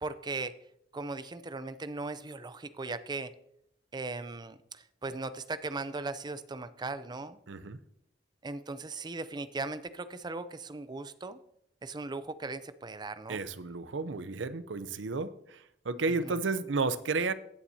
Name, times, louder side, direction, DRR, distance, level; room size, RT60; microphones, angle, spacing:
voice 1, 0.0-0.5 0.9-3.3 3.9-7.4 8.4-11.4 11.8-13.4 16.2-16.4, right 3 dB, 25° right, 13 dB, 0.5 m, -38 dB
voice 2, 7.5-7.8 13.3-15.6 15.9-17.3, right 3 dB, 75° right, 14 dB, 0.6 m, -32 dB
17.0 x 7.3 x 2.8 m, 0.72 s
head